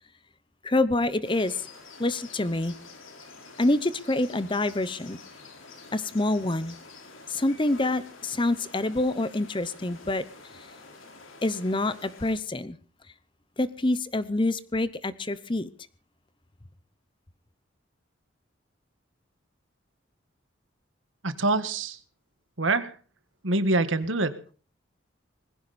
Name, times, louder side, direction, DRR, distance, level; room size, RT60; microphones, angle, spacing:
voice 1, 0.6-1.7 2.0-2.7 3.6-5.2 5.9-6.8 7.3-10.2 11.4-12.8 13.6-15.7, left 2 dB, 25° left, 15 dB, 0.8 m, -26 dB
sound 1, 1.2-12.4, left 3 dB, 90° left, 4.5 m, -48 dB
voice 2, 21.2-22.0 22.6-22.9 23.4-24.4, right 2 dB, 80° right, 11 dB, 1.7 m, -25 dB
20.5 x 16.0 x 4.3 m, 0.39 s
head